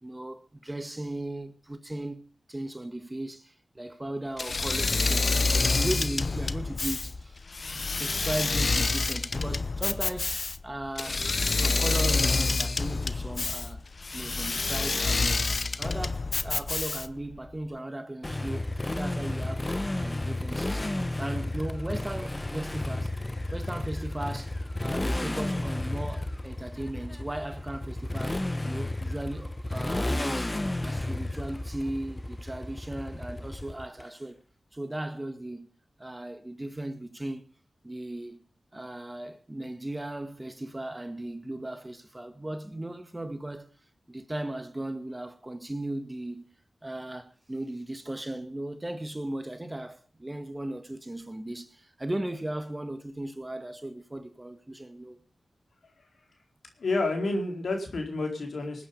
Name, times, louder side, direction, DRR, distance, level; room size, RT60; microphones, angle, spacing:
voice 1, 0.0-7.4 8.0-10.4 10.6-13.9 14.1-15.4 15.8-23.2 23.5-30.5 30.8-34.4 34.7-35.7 36.0-37.4 37.8-38.4 38.7-43.7 44.1-46.4 46.8-55.2, right 1 dB, 20° right, 1.8 m, -37 dB
Engine / Mechanisms, 4.4-17.3, left 3 dB, 55° left, 0.7 m, -28 dB
Motorcycle, 18.2-34.0, left 1 dB, 25° left, 1.0 m, -32 dB
voice 2, 56.8-58.9, left 2 dB, 75° left, 4.2 m, -29 dB
19.5 x 9.3 x 5.4 m
cardioid pair, 45°, 0 cm